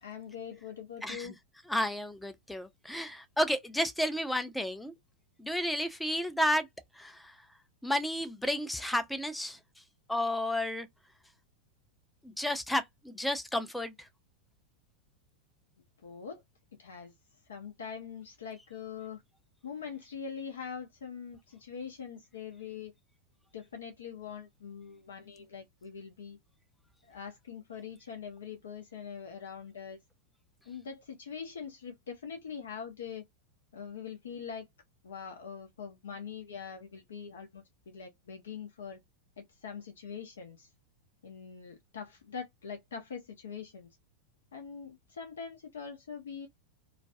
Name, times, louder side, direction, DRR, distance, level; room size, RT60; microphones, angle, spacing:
voice 1, 0.0-1.3 16.0-16.4 16.8-17.1 17.5-19.2 19.6-22.9 23.5-26.4 27.0-30.0 30.7-33.2 33.7-34.7 35.0-39.0 39.4-40.7 41.2-43.9 44.5-46.5, left 7 dB, 65° left, 0.5 m, -43 dB
voice 2, 1.0-1.4 1.7-4.9 5.4-6.7 6.9-7.4 7.8-9.6 10.1-10.9 12.2-14.1, equal, 5° left, 0.5 m, -32 dB
2.4 x 2.2 x 2.5 m
figure-of-eight pair, 90°, 0 cm